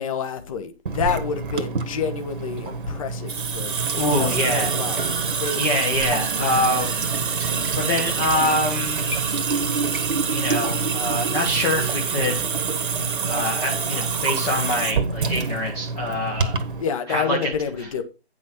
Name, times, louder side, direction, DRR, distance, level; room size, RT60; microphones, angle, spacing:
voice 1, 0.0-5.0 5.4-5.6 16.8-18.0, left 6 dB, 30° left, 1.2 m, -28 dB
Water tap faucet / Sink (filling or washing) / Drip, 0.9-16.8, right 5 dB, 50° right, 1.4 m, -26 dB
voice 2, 3.9-4.8 5.5-7.0 7.8-9.1 10.3-12.4 13.3-16.5 17.1-17.5 17.8-17.9, left 1 dB, 10° left, 0.8 m, -25 dB
9.4 x 6.2 x 4.3 m
figure-of-eight pair, 145°, 33 cm